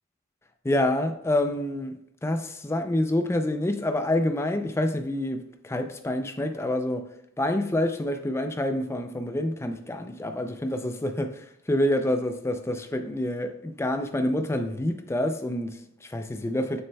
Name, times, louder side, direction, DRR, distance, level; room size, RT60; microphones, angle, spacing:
voice 1, 0.6-1.9 2.2-7.1 7.4-16.8, left 1 dB, 10° left, 0.3 m, -27 dB
6.7 x 6.5 x 2.2 m
head